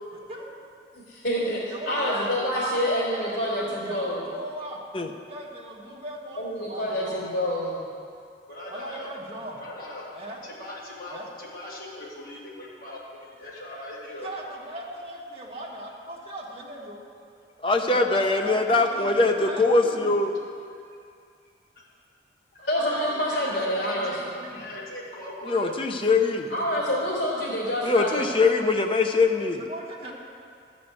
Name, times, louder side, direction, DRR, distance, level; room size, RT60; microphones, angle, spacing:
voice 1, 0.9-4.2 6.4-7.8 22.6-24.1 26.5-28.3, equal, 85° left, -10 dB, 2.9 m, -27 dB
voice 2, 1.7-2.8 3.1-4.8 5.3-7.2 8.7-9.6 10.1-10.4 11.1-11.2 13.4-13.5 14.2-17.0 17.9-20.1 22.7-24.6 26.0-26.1 26.4-27.1 29.6-30.1, right 1 dB, 35° right, -4 dB, 1.7 m, -39 dB
voice 3, 8.5-9.1 9.6-10.0 10.4-14.3 22.5-24.2 24.5-25.9, left 1 dB, 55° left, -6 dB, 2.3 m, -40 dB
voice 4, 17.6-20.3 25.5-26.5 27.8-29.6, left 3 dB, 30° left, 4 dB, 0.7 m, -22 dB
12.5 x 5.2 x 8.3 m, 2.4 s
head